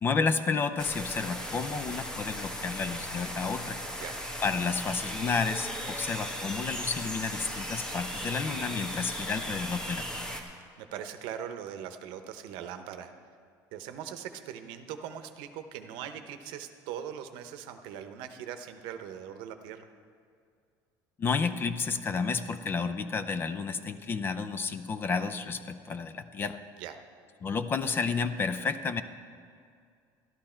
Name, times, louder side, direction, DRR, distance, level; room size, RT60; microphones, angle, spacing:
voice 1, 0.0-3.8 4.4-10.3 21.2-26.6 27.4-29.0, left 5 dB, 25° left, 11 dB, 0.5 m, -31 dB
sound 1, 0.8-10.4, equal, 10° left, 1.1 m, -37 dB
voice 2, 10.8-13.1 13.7-19.9 26.8-27.0, right 9 dB, 70° right, 8 dB, 0.8 m, -41 dB
12.5 x 11.5 x 4.4 m, 2.3 s
cardioid pair, 145°, 8 cm